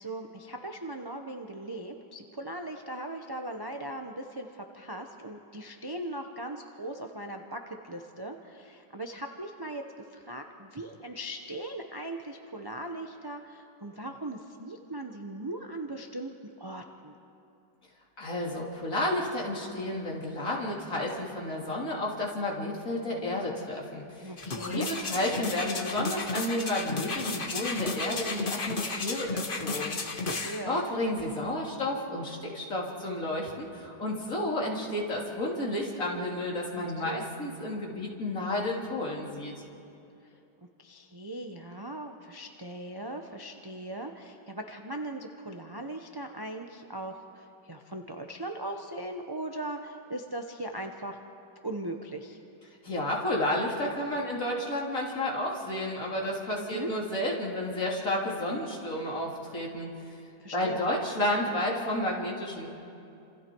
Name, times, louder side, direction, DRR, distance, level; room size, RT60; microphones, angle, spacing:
voice 1, 0.0-16.3 16.6-17.1 24.2-24.9 30.2-30.8 36.8-37.2 40.2-40.4 40.8-51.2 51.6-52.4 56.6-56.9 60.4-60.8, right 1 dB, 20° right, 3 dB, 0.8 m, -39 dB
voice 2, 18.2-24.3 24.7-30.0 30.6-39.5 52.8-60.2 60.5-62.7, left 1 dB, 50° left, -3 dB, 3.6 m, -31 dB
sound 1, 24.4-30.6 31.2-31.3, left 3 dB, 30° left, 1.3 m, -33 dB
29.5 x 27.0 x 4.7 m, 2.7 s
omnidirectional pair, 1.9 m